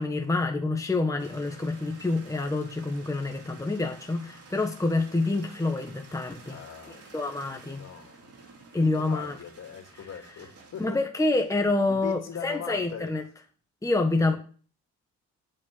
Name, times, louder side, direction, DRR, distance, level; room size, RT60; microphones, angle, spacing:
voice 1, 0.0-6.6 7.1-7.8 8.7-9.4 10.8-13.2 13.8-14.4, left 2 dB, 10° left, 1.4 m, -27 dB
sound 1, 1.2-10.9, right 4 dB, 55° right, 3.1 m, -51 dB
voice 2, 6.5-8.4 8.8-11.0 11.3-11.4 11.9-13.1 14.3-14.4, left 7 dB, 60° left, 2.6 m, -42 dB
8.8 x 7.4 x 7.8 m
cardioid pair, 90°, 30 cm